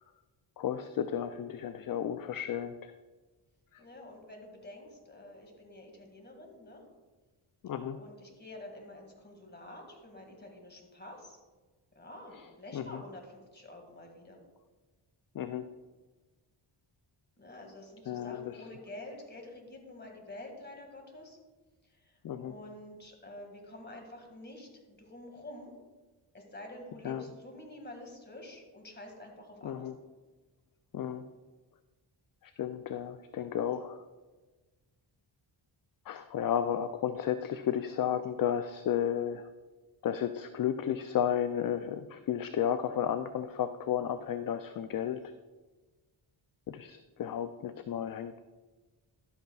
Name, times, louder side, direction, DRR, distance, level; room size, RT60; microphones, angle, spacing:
voice 1, 0.6-2.9 7.6-8.0 12.3-12.4 12.7-13.0 15.3-15.7 18.1-18.6 22.2-22.5 27.0-27.2 29.6-29.9 30.9-31.2 32.4-34.0 36.1-39.5 40.0-45.2 46.7-48.4, left 9 dB, 45° left, 10 dB, 0.4 m, -33 dB
voice 2, 3.8-6.8 8.0-11.4 12.0-14.4 17.4-21.4 21.9-25.7 26.3-29.9, left 1 dB, 20° left, 2 dB, 2.0 m, -48 dB
11.5 x 8.1 x 2.3 m, 1.3 s
cardioid pair, 75°, 50 cm